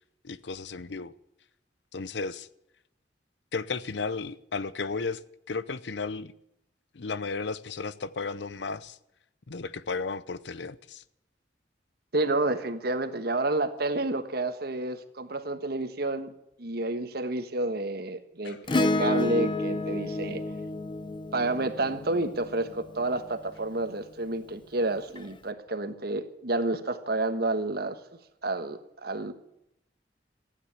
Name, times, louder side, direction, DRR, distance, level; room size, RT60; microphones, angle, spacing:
voice 1, 0.2-1.1 1.9-2.5 3.5-5.2 5.5-6.3 6.9-9.0 9.5-11.0 18.4-18.6, left 4 dB, 70° left, 0.7 m, -34 dB
voice 2, 12.1-16.3 16.6-20.4 21.3-28.0 28.4-29.3, right 2 dB, 60° right, 1.4 m, -30 dB
Acoustic guitar / Strum, 18.7-23.3 25.2-25.3, left 2 dB, 25° left, 0.8 m, -30 dB
15.0 x 9.7 x 8.3 m
head